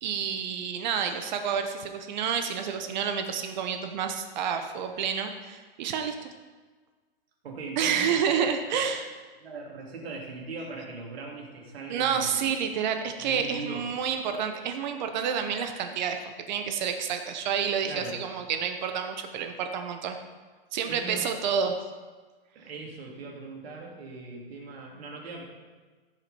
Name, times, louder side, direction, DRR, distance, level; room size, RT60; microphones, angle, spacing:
voice 1, 0.0-6.3 7.8-9.1 11.9-20.2 20.7-21.8, right 7 dB, 50° right, 6 dB, 0.9 m, -29 dB
voice 2, 7.4-8.8 9.4-12.4 13.2-13.9 17.8-18.2 20.9-21.2 22.5-25.4, right 3 dB, 85° right, -1 dB, 3.0 m, -40 dB
15.0 x 6.1 x 4.3 m, 1.4 s
hypercardioid pair, 150°, 30 cm